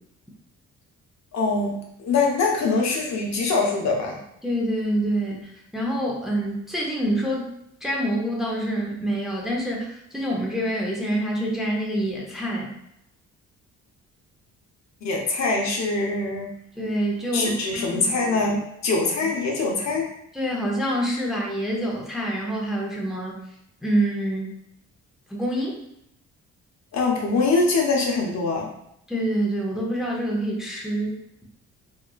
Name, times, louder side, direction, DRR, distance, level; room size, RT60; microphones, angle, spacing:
voice 1, 1.3-4.2 15.0-16.5 17.3-20.1 26.9-28.7, left 3 dB, 60° left, 0 dB, 0.7 m, -23 dB
voice 2, 4.4-7.5 7.8-12.7 16.8-18.1 20.3-23.4 23.8-24.5 25.3-25.8 29.1-31.2, right 1 dB, ahead, -3 dB, 0.6 m, -26 dB
2.9 x 2.3 x 2.3 m, 0.77 s
cardioid pair, 90°, 30 cm